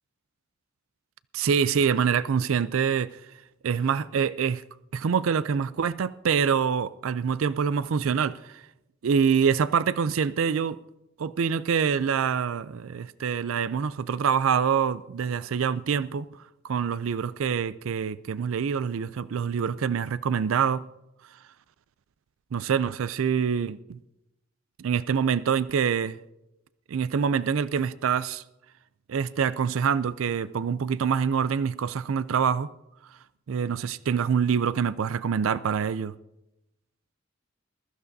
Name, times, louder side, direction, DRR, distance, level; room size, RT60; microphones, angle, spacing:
voice 1, 1.3-3.2 3.6-4.6 4.9-8.6 9.0-10.8 11.2-16.3 16.6-20.8 22.5-24.0 24.8-26.2 26.9-28.4 29.1-32.7 33.5-36.1, right 7 dB, 85° right, 0.4 m, -25 dB
21.5 x 14.0 x 2.7 m
head